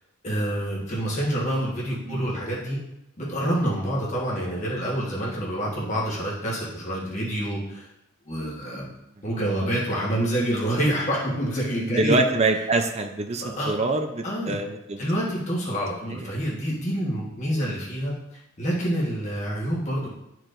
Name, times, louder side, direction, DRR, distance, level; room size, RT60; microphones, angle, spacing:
voice 1, 0.2-2.8 3.2-7.9 8.3-8.9 9.2-12.2 13.4-13.7 14.2-14.6 15.0-20.1, right 1 dB, 35° left, -5 dB, 1.3 m, -27 dB
voice 2, 11.8-15.0 16.1-16.3, right 2 dB, 30° right, 5 dB, 0.5 m, -25 dB
11.5 x 4.6 x 2.6 m, 0.87 s
head